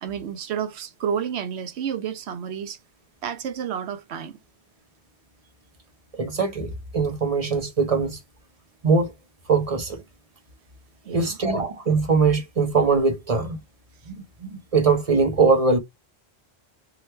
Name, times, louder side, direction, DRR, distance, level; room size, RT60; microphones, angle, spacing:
voice 1, 0.0-2.8 3.2-4.4 11.0-11.4, right 8 dB, 80° right, 0.9 m, -30 dB
voice 2, 6.2-8.2 8.8-9.1 9.5-10.0 11.1-13.6 14.1-15.8, right 4 dB, 35° right, 0.7 m, -22 dB
2.9 x 2.4 x 3.1 m
omnidirectional pair, 1.1 m